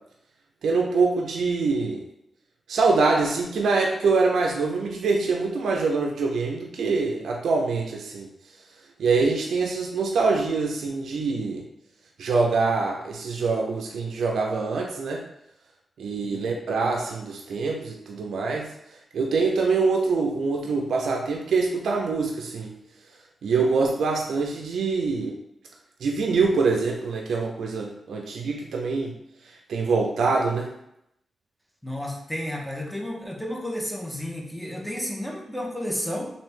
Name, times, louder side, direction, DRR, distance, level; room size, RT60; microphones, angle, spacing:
voice 1, 0.6-2.0 2.7-8.3 9.0-11.6 12.2-15.2 16.0-18.7 19.1-22.7 23.4-25.3 26.0-29.1 29.7-30.7, right 4 dB, 85° right, 1 dB, 0.4 m, -24 dB
voice 2, 31.8-36.3, equal, 5° left, -1 dB, 0.7 m, -32 dB
3.1 x 2.6 x 3.2 m, 0.80 s
cardioid pair, 70°, 0 cm